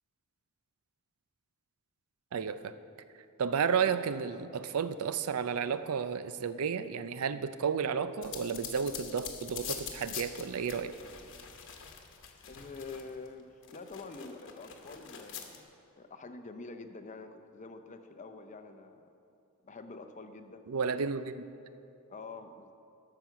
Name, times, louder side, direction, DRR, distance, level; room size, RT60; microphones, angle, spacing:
voice 1, 2.3-2.7 3.4-11.0 20.7-21.4, right 6 dB, 75° right, 12 dB, 0.5 m, -32 dB
sound 1, 8.2-13.3 13.6-15.6, left 7 dB, 60° left, 1.1 m, -44 dB
voice 2, 12.5-15.7 16.0-19.1 19.6-20.6 22.1-22.7, left 3 dB, 35° left, 7 dB, 0.6 m, -46 dB
12.5 x 5.9 x 7.0 m, 2.7 s
head